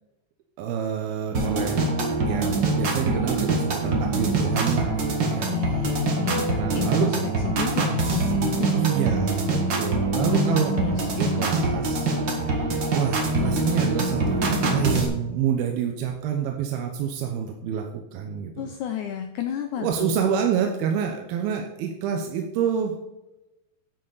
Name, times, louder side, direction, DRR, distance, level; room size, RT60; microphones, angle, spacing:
voice 1, 0.6-1.9 2.3-5.5 6.6-7.1 8.7-10.8 11.2-12.1 12.4-12.7 12.9-18.8 19.8-22.9, right 8 dB, 90° right, 2 dB, 2.8 m, -27 dB
sound 1, 1.3-15.1, right 2 dB, 50° right, 1.4 m, -24 dB
voice 2, 5.5-7.1 7.4-9.0 10.2-11.1 18.6-20.3, left 10 dB, 80° left, 5 dB, 1.8 m, -30 dB
11.0 x 7.9 x 4.0 m, 0.98 s
omnidirectional pair, 4.3 m